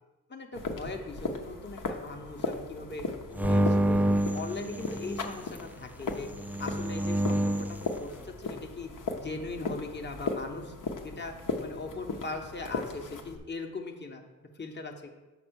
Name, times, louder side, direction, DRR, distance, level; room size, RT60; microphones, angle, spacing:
voice 1, 0.3-3.1 3.3-6.3 6.6-8.9 9.2-10.7 11.0-14.2 14.5-15.1, left 3 dB, 30° left, 3 dB, 1.0 m, -40 dB
sound 1, 0.5-13.4, left 3 dB, 55° left, 1.0 m, -37 dB
sound 2, 3.4-5.3 6.3-7.8, right 1 dB, 5° right, 0.4 m, -27 dB
5.9 x 4.2 x 6.3 m, 1.2 s
cardioid pair, 45°, 38 cm